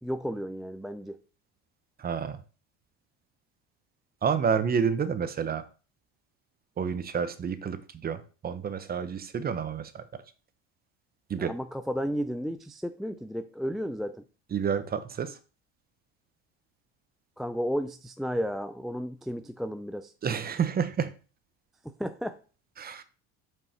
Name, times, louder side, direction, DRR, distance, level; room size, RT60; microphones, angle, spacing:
voice 1, 0.0-1.2 11.4-14.2 17.4-20.1 21.8-22.4, equal, ahead, 0.3 m, -33 dB
voice 2, 2.0-2.4 4.2-5.6 6.8-10.0 11.3-11.5 14.5-15.3 20.2-21.1 22.8-23.0, right 7 dB, 30° right, 0.8 m, -29 dB
5.4 x 5.4 x 4.3 m
supercardioid pair, 105°, 31 cm